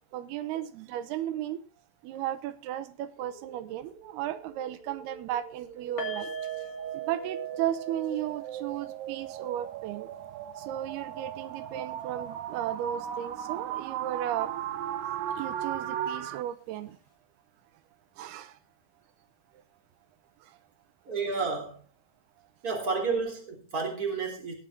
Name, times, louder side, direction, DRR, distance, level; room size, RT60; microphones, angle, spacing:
voice 1, 0.1-1.6 2.0-6.3 6.9-10.1 10.6-14.5 15.4-17.0 18.2-18.6 20.4-20.6 22.4-22.5, right 12 dB, 90° right, 2.9 m, -35 dB
sound 1, 3.2-16.4, right 9 dB, 70° right, 1.8 m, -38 dB
sound 2, 6.0-13.2 13.4-13.6 14.0-14.1, right 5 dB, 50° left, 3.4 m, -42 dB
voice 2, 21.1-21.8 22.6-24.5, right 4 dB, 25° right, 3.7 m, -31 dB
19.5 x 7.4 x 3.9 m
omnidirectional pair, 4.4 m